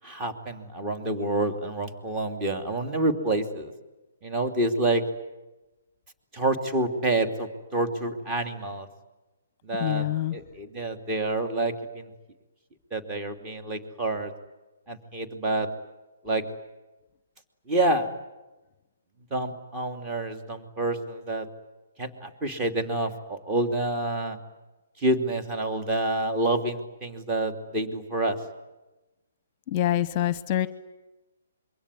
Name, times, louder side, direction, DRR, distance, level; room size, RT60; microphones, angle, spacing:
voice 1, 0.0-3.7 4.2-5.0 6.3-8.9 9.6-12.1 12.9-14.3 14.9-15.7 16.2-16.4 17.7-18.1 19.3-21.5 22.0-24.4 25.0-28.4, right 2 dB, 20° right, 7 dB, 2.9 m, -28 dB
voice 2, 9.8-10.4 29.7-30.7, left 12 dB, 35° left, 16 dB, 0.9 m, -25 dB
26.5 x 23.0 x 9.8 m, 1.1 s
figure-of-eight pair, 135°, 0 cm